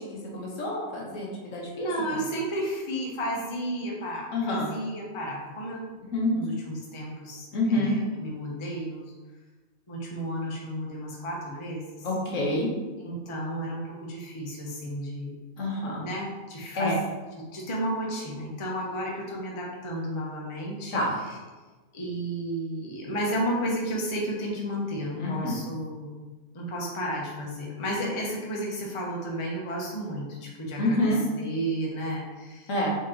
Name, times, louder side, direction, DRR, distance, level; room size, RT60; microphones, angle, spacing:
voice 1, 0.0-2.2 4.3-4.7 6.1-6.3 7.5-8.0 12.0-12.7 15.6-16.0 16.7-17.0 20.9-21.2 25.1-25.6 30.8-31.2 32.7-32.9, left 1 dB, 65° left, -3 dB, 1.3 m, -27 dB
voice 2, 1.8-5.8 6.3-9.1 9.9-12.1 13.0-15.3 16.0-16.9 17.5-20.9 21.9-26.2 26.5-31.1 31.4-32.7, equal, 30° left, -3 dB, 0.6 m, -32 dB
4.3 x 2.9 x 3.7 m, 1.3 s
omnidirectional pair, 1.5 m